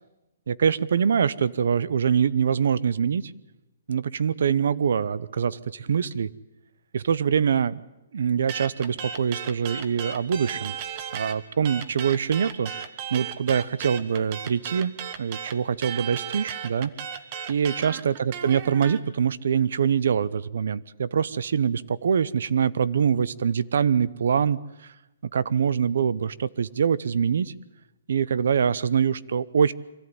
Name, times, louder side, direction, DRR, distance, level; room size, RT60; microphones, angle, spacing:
voice 1, 0.5-3.3 3.9-6.3 6.9-7.8 8.1-10.8 11.1-12.7 13.1-14.9 15.2-16.9 17.5-24.6 25.3-27.5 28.1-29.7, right 7 dB, 60° right, 19 dB, 0.7 m, -24 dB
sound 1, 8.5-11.4 11.6-19.0, right 8 dB, 30° right, 1.1 m, -35 dB
24.0 x 14.0 x 9.5 m, 0.99 s
hypercardioid pair, 170°, 0 cm